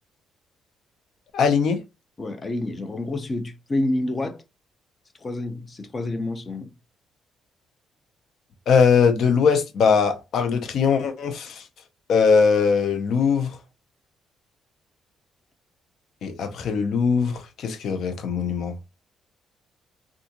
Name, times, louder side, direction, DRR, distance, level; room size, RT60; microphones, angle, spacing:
voice 1, 1.3-1.8 8.7-11.6 12.1-13.6 16.2-18.7, left 5 dB, 65° left, 0.7 m, -20 dB
voice 2, 2.2-4.4 5.2-6.7, left 2 dB, 30° left, 0.7 m, -28 dB
3.5 x 2.4 x 2.9 m
cardioid pair, 75°, 0 cm